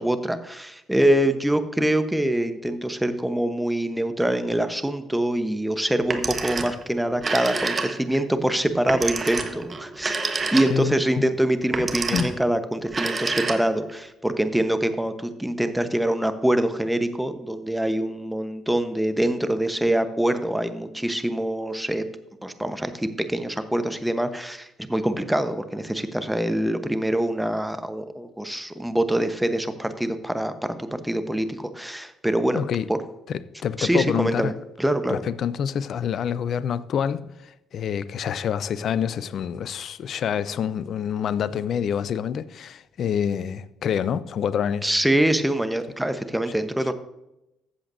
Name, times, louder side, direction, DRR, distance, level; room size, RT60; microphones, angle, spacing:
voice 1, 0.0-10.2 10.5-22.0 22.4-30.5 30.8-32.6 32.9-33.0 33.8-34.5 34.8-35.2 44.8-46.9, right 1 dB, 5° right, 1.0 m, -24 dB
Telephone, 6.0-6.8 7.1-8.2 8.9-11.0 11.6-12.4 12.9-13.9, right 4 dB, 35° right, 1.2 m, -28 dB
voice 2, 10.7-11.2 12.1-12.3 32.5-32.9 33.3-34.5 35.1-44.9, left 8 dB, 55° left, 0.5 m, -27 dB
14.5 x 7.8 x 2.7 m
hypercardioid pair, 50°, 0 cm